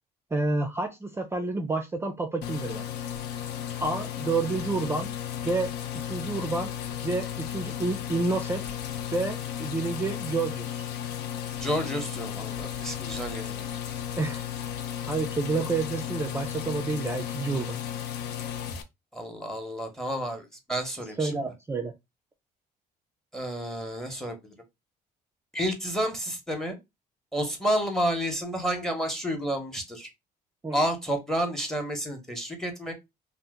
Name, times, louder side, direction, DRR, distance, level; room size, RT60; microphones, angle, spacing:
voice 1, 0.3-2.8 3.8-5.1 5.4-5.7 6.0-6.7 7.0-8.8 9.1-10.8 14.2-14.5 15.1-17.8 21.2-21.9 30.6-30.8, right 3 dB, 15° right, 0.3 m, -29 dB
sound 1, 2.4-18.8, left 10 dB, 80° left, 0.5 m, -34 dB
voice 2, 11.6-13.6 19.1-21.3 23.3-24.5 25.5-26.8 27.3-30.1 30.7-32.9, equal, 5° left, 0.8 m, -30 dB
2.7 x 2.0 x 3.4 m
cardioid pair, 110°, 17 cm